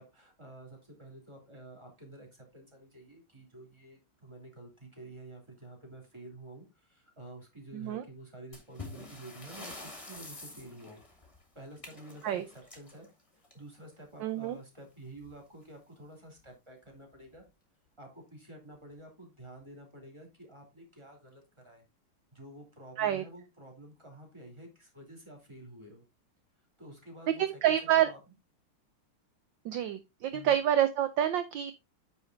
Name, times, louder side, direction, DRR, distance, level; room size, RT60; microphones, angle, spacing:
voice 1, 0.0-11.0 11.5-13.1 13.3-17.4 18.0-21.8 22.3-26.0 26.8-27.7 28.1-28.2 30.3-30.6, right 1 dB, 15° right, 1 dB, 2.9 m, -50 dB
voice 2, 7.7-8.0 12.2-12.5 14.2-14.6 23.0-23.2 27.4-28.1 29.6-31.7, right 11 dB, 70° right, 11 dB, 1.3 m, -28 dB
sound 1, 8.5-13.9 15.2-15.3 15.6-15.7 16.4-16.5 17.1-17.4, left 2 dB, 15° left, 2.3 m, -48 dB
9.2 x 5.0 x 3.9 m, 0.24 s
omnidirectional pair, 2.3 m